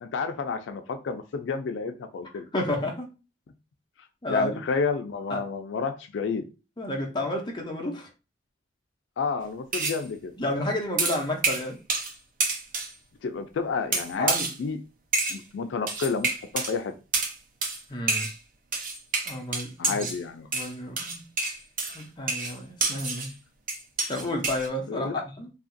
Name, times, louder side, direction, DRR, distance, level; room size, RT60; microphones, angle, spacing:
voice 1, 0.0-2.5 4.3-6.5 9.2-10.3 13.2-14.3 14.6-14.8 15.3-16.3 16.5-16.9 19.8-20.5 24.9-25.2, left 5 dB, 75° left, 0.3 m, -30 dB
voice 2, 2.5-3.1 4.2-4.6 5.3-5.5 6.8-8.1 10.4-11.8 14.2-14.5 17.9-18.3 19.2-20.1 20.5-21.3 21.9-23.3 24.1-25.5, left 1 dB, 25° left, 0.5 m, -31 dB
sound 1, 9.7-10.0 11.0-12.1 12.4-12.9 13.9-14.6 15.1-15.4 15.9-16.7 17.1-17.3 17.6-17.8 18.1-18.4 18.7-20.2 20.5-23.3 23.7-24.7, right 3 dB, 45° right, 0.6 m, -28 dB
2.8 x 2.4 x 2.5 m
head